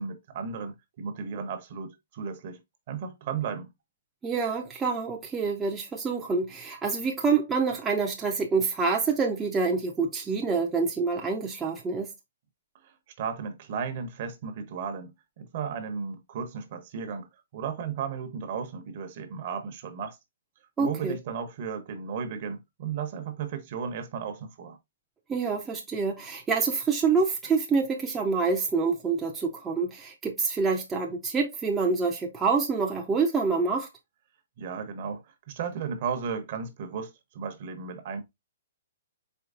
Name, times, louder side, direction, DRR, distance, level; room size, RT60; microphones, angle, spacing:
voice 1, 0.0-2.6 2.9-3.7 12.8-20.2 20.8-24.8 34.6-38.2, right 6 dB, 45° right, 0.8 m, -35 dB
voice 2, 4.2-12.1 20.8-21.2 25.3-33.9, right 4 dB, 10° right, 0.5 m, -27 dB
4.4 x 3.1 x 2.4 m
hypercardioid pair, 155°, 0 cm